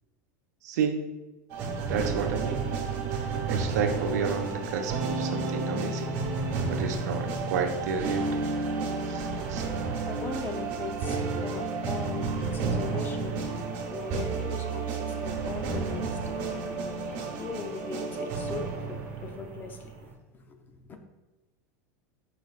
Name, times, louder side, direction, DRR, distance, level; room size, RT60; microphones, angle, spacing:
voice 1, 0.6-1.0 1.8-2.7 3.1-6.2 6.7-8.5 9.0-9.6, right 5 dB, 85° right, 5 dB, 0.6 m, -31 dB
sound 1, 1.5-20.1, right 4 dB, 55° right, 0.9 m, -31 dB
voice 2, 10.0-20.2 20.5-20.6, left 4 dB, 20° left, 6 dB, 0.5 m, -40 dB
4.8 x 4.1 x 2.4 m, 1.1 s
supercardioid pair, 135°, 9 cm